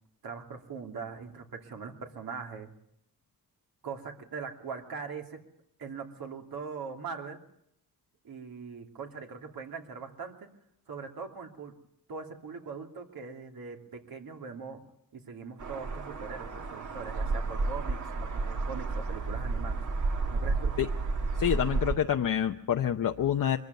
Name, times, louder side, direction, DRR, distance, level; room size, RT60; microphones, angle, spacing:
voice 1, 0.2-2.7 3.8-5.4 5.8-7.4 8.2-10.5 10.9-11.7 12.1-14.8 15.1-18.0 18.3-19.8 20.3-20.7, right 5 dB, 75° right, 3 dB, 3.0 m, -41 dB
sound 1, 15.6-22.0, right 3 dB, 55° right, 2.0 m, -31 dB
voice 2, 21.4-23.6, left 9 dB, 60° left, 5 dB, 0.8 m, -27 dB
23.5 x 14.5 x 9.5 m, 0.75 s
wide cardioid pair, 150°, 36 cm